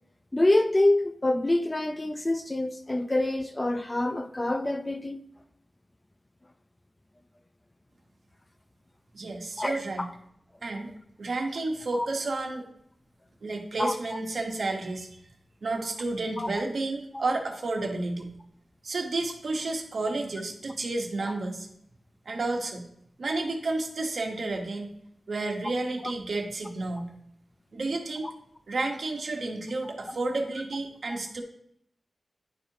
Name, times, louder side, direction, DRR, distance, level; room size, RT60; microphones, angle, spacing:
voice 1, 0.3-5.2 9.6-9.8 11.9-12.1 13.8-13.9 16.4-16.5 21.2-21.3 31.1-31.2, left 1 dB, 25° left, 0.5 m, -26 dB
voice 2, 9.1-10.0 10.6-10.9 11.2-12.7 13.4-15.2 15.6-18.3 18.8-21.7 22.2-22.9 23.2-24.9 25.3-27.1 27.7-28.3 28.7-31.4, right 2 dB, 70° right, 1.2 m, -31 dB
11.0 x 4.7 x 2.8 m
wide cardioid pair, 65°, 0 cm